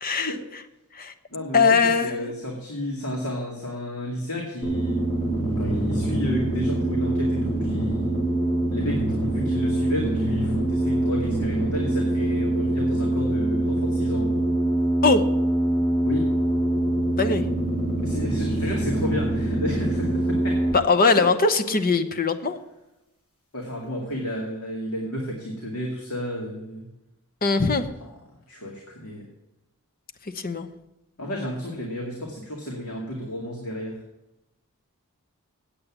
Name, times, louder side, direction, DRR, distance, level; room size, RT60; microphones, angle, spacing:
voice 1, 0.0-0.3 0.9-1.1 1.5-2.3 15.0-15.2 17.2-17.5 20.7-22.6 27.4-27.9 30.3-30.7, left 4 dB, 40° left, 9 dB, 0.9 m, -21 dB
voice 2, 1.3-5.0 5.6-8.2 8.7-14.5 16.0-16.2 18.0-20.6 21.0-21.2 23.5-26.8 28.5-29.2 31.2-33.9, equal, 70° left, -1 dB, 2.2 m, -31 dB
sound 1, 4.6-20.7, right 1 dB, 25° left, 3.1 m, -24 dB
8.6 x 8.5 x 7.3 m, 0.95 s
head